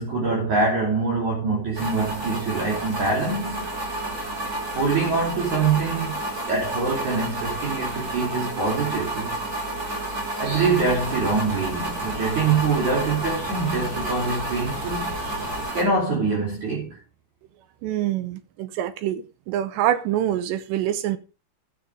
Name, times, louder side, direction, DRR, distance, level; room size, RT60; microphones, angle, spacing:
voice 1, 0.0-3.7 4.7-9.4 9.6-9.8 10.4-15.2 15.7-17.0, right 4 dB, 45° right, 4.2 m, -24 dB
sound 1, 1.8-15.8, right 1 dB, 25° right, 2.7 m, -30 dB
sound 2, 10.4-15.6, left 1 dB, 60° right, 6.6 m, -37 dB
voice 2, 17.8-21.2, right 12 dB, 80° right, 2.9 m, -25 dB
13.5 x 7.2 x 5.0 m
omnidirectional pair, 5.1 m